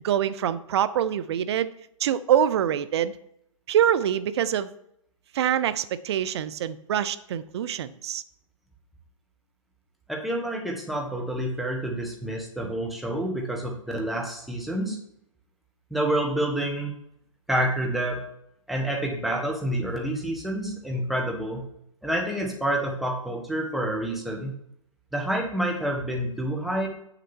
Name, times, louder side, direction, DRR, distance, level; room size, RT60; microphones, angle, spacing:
voice 1, 0.0-1.7 2.0-3.2 3.7-4.7 5.3-8.2, right 9 dB, 50° right, 15 dB, 0.6 m, -25 dB
voice 2, 10.1-15.0 15.9-16.9 17.5-18.2 18.7-21.6 22.0-24.5 25.1-26.9, right 1 dB, ahead, -1 dB, 1.5 m, -28 dB
7.3 x 6.8 x 4.4 m, 0.75 s
hypercardioid pair, 130°, 17 cm